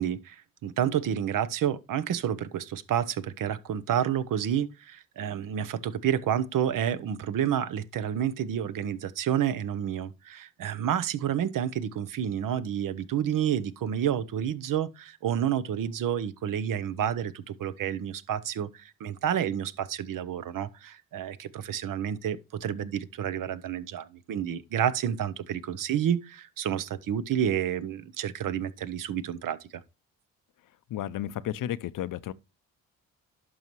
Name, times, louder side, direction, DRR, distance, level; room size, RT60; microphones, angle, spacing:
voice 1, 0.0-29.7, right 9 dB, 65° right, 0.9 m, -29 dB
voice 2, 30.9-32.3, left 12 dB, 65° left, 0.7 m, -32 dB
11.0 x 5.5 x 3.1 m
supercardioid pair, 65°, 35 cm